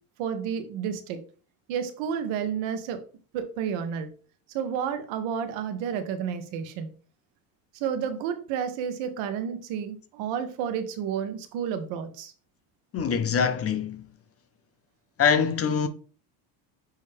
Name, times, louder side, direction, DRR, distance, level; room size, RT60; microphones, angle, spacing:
voice 1, 0.2-1.2 1.7-3.0 3.3-4.1 4.5-6.9 7.7-12.3, right 8 dB, 70° right, 1.3 m, -31 dB
voice 2, 12.9-14.0 15.2-15.9, left 6 dB, 30° left, 0.7 m, -24 dB
9.4 x 3.1 x 3.5 m
supercardioid pair, 115°, 48 cm